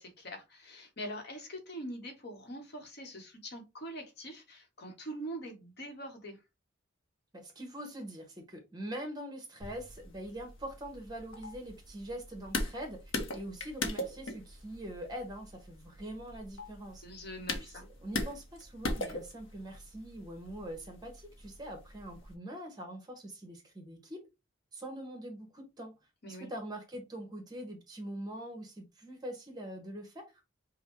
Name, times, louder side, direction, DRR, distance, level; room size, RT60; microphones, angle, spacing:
voice 1, 0.0-6.4 17.0-17.9 26.2-26.5, right 1 dB, 55° left, 1.1 m, -43 dB
voice 2, 7.3-13.0 13.3-17.0 17.6-24.2 24.7-25.9 26.3-30.3, right 1 dB, 20° right, 1.1 m, -43 dB
sound 1, 9.6-22.3, left 2 dB, 80° left, 0.9 m, -41 dB
5.3 x 2.2 x 3.0 m
head